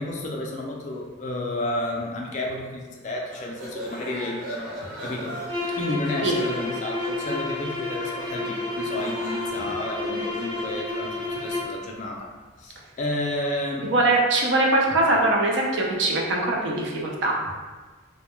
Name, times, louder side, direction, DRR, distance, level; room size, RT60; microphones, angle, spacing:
voice 1, 0.0-4.8 5.0-5.4 5.8-12.3 12.6-13.9, left 1 dB, 35° left, -1 dB, 0.3 m, -31 dB
sound 1, 3.3-10.7, equal, 90° right, 0.8 m, -39 dB
sound 2, 5.5-11.8, left 2 dB, 20° right, 0.9 m, -30 dB
voice 2, 13.9-17.4, right 2 dB, 65° right, -1 dB, 0.4 m, -22 dB
2.1 x 2.1 x 2.9 m, 1.4 s
head